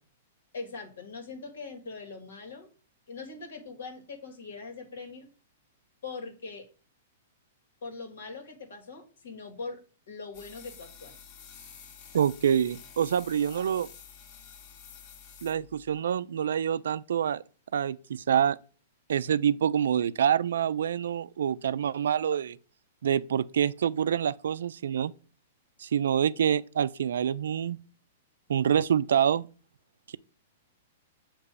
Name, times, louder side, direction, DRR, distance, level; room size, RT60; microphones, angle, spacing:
voice 1, 0.5-2.7 3.1-5.3 6.0-6.7 7.8-9.8 10.1-11.2, left 4 dB, 85° left, 1.7 m, -41 dB
sound 1, 10.3-16.0, left 7 dB, 40° left, 0.9 m, -50 dB
voice 2, 12.1-13.9 15.4-17.4 17.7-18.6 19.1-22.6 23.0-25.1 25.8-27.8 28.5-29.5, right 8 dB, 80° right, 0.3 m, -26 dB
6.7 x 2.9 x 5.0 m
hypercardioid pair, 140°, 0 cm